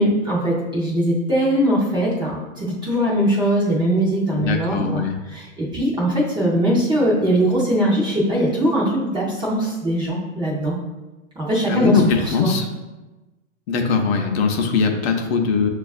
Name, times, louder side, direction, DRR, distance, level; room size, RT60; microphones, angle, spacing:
voice 1, 0.0-5.0 5.3-10.8 11.4-12.0 12.4-12.5, equal, 10° right, -6 dB, 0.5 m, -21 dB
voice 2, 4.3-5.2 11.7-12.7 13.7-15.7, left 5 dB, 55° left, 3 dB, 0.6 m, -21 dB
6.1 x 2.4 x 2.3 m, 1.1 s
hypercardioid pair, 135°, 38 cm